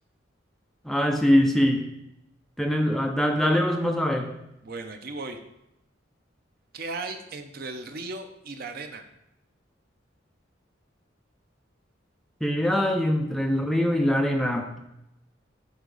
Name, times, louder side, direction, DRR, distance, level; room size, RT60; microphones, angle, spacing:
voice 1, 0.8-1.8 2.6-4.3 12.4-14.8, equal, ahead, 2 dB, 0.5 m, -23 dB
voice 2, 4.6-5.4 6.7-9.0, right 3 dB, 50° right, 6 dB, 0.6 m, -36 dB
8.0 x 4.6 x 3.9 m, 0.85 s
head